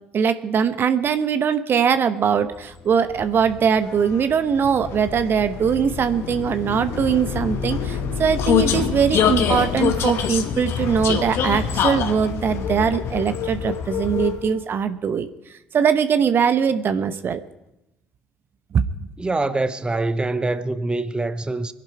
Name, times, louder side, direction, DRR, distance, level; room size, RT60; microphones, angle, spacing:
voice 1, 0.1-15.3 15.7-17.4 18.7-18.9, right 7 dB, 45° right, 1.0 m, -21 dB
Vehicle, 2.7-14.6, left 7 dB, 60° left, 1.4 m, -25 dB
voice 2, 19.2-21.7, right 2 dB, 20° right, 0.9 m, -24 dB
23.5 x 11.0 x 4.7 m
figure-of-eight pair, 50°, 5 cm